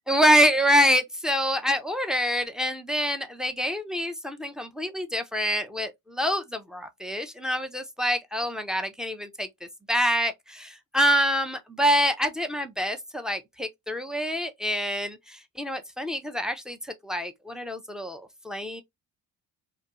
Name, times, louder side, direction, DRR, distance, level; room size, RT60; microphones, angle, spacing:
voice 1, 0.1-9.5 9.9-18.8, equal, ahead, 0.3 m, -26 dB
2.3 x 2.2 x 2.8 m
hypercardioid pair, 50°, 45 cm